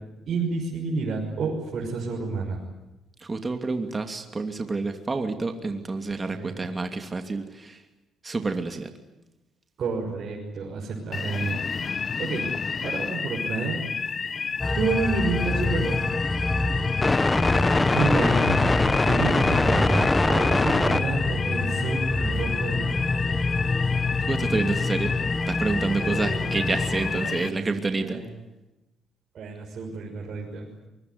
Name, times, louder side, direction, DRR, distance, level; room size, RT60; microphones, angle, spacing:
voice 1, 0.3-2.6 6.3-6.7 9.8-11.6 12.2-12.5 12.8-13.8 14.7-16.0 17.9-18.7 19.0-23.0 26.0-26.8 27.0-27.6 27.9-28.3 29.3-30.7, right 4 dB, 60° right, -2 dB, 6.2 m, -29 dB
voice 2, 3.2-7.8 8.2-8.9 24.2-25.2 25.5-28.2, right 3 dB, 30° right, 6 dB, 2.7 m, -28 dB
sound 1, 11.1-27.5, left 5 dB, 40° left, 1.0 m, -31 dB
sound 2, 14.6-27.3, left 2 dB, 20° left, 1.2 m, -24 dB
24.0 x 22.5 x 9.7 m, 0.98 s
cardioid pair, 90°, 0 cm